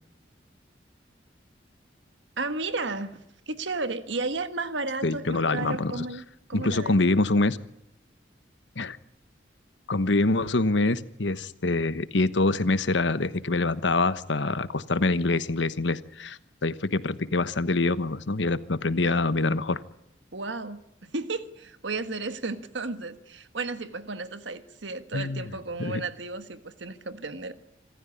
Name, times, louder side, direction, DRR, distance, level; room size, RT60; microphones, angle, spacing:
voice 1, 2.4-3.2 3.5-6.2 6.5-7.0 19.0-19.1 20.3-27.5, right 3 dB, 85° right, 11 dB, 1.5 m, -33 dB
voice 2, 5.0-6.0 6.5-7.6 8.8-9.0 9.9-19.8 25.1-25.5 25.8-26.0, left 2 dB, 85° left, 14 dB, 1.1 m, -25 dB
26.5 x 14.0 x 9.9 m, 0.84 s
head